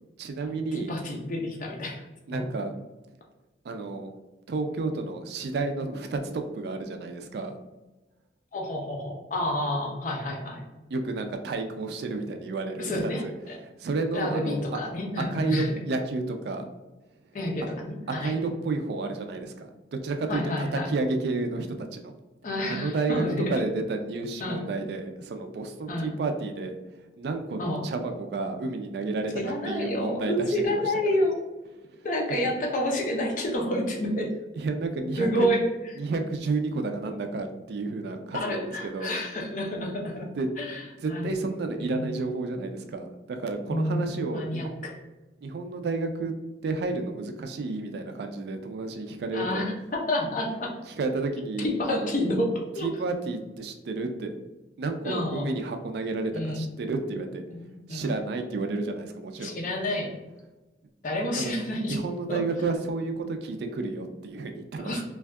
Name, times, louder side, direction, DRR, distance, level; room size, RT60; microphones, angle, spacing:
voice 1, 0.2-0.9 2.3-2.7 3.6-4.1 4.5-7.5 10.9-14.6 15.2-16.6 18.1-22.1 22.7-23.2 23.5-31.2 31.9-32.1 32.4-32.5 34.6-35.5 36.0-39.2 40.4-40.5 41.0-44.8 45.4-46.3 46.6-49.7 50.9-52.1 52.8-54.3 54.8-59.6 61.3-61.6 61.8-65.0, right 3 dB, 65° right, 6 dB, 0.3 m, -31 dB
voice 2, 0.7-2.0 2.3-2.4 8.5-10.7 12.8-13.6 14.1-15.7 17.3-18.3 20.3-20.9 22.4-23.5 24.4-24.7 25.9-26.1 27.6-27.8 29.4-31.4 32.0-34.3 35.2-35.6 38.3-40.3 40.6-40.8 41.1-41.3 41.8-42.1 43.7-44.9 49.3-50.7 51.6-52.9 55.0-55.5 56.3-56.6 57.5-58.1 59.4-60.2 61.0-62.0 62.3-62.4 64.8-65.0, left 1 dB, 45° left, 0 dB, 0.6 m, -29 dB
2.6 x 2.3 x 3.4 m, 1.1 s
head